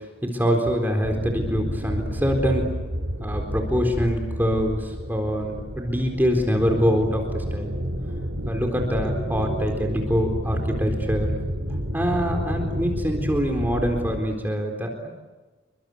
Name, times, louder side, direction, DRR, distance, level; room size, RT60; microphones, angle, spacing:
voice 1, 0.0-2.6 3.2-7.7 8.5-11.3 11.9-15.1, equal, 10° right, 3 dB, 4.1 m, -24 dB
sound 1, 1.0-14.2, equal, 60° right, 5.3 m, -30 dB
29.0 x 24.5 x 8.4 m, 1.2 s
head